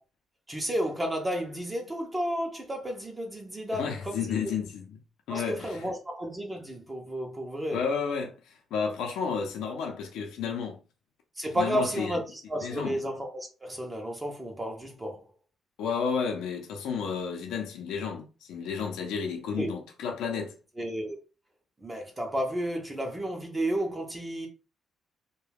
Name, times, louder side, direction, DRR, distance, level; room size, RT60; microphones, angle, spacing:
voice 1, 0.5-4.3 5.3-7.8 11.4-15.2 19.6-19.7 20.8-21.2 21.8-24.5, equal, 20° right, 0.6 m, -32 dB
voice 2, 3.7-5.0 5.3-5.9 7.7-10.8 11.5-12.2 12.6-13.0 15.8-20.6, left 6 dB, 85° left, 0.6 m, -32 dB
2.3 x 2.2 x 3.3 m
cardioid pair, 90°, 0 cm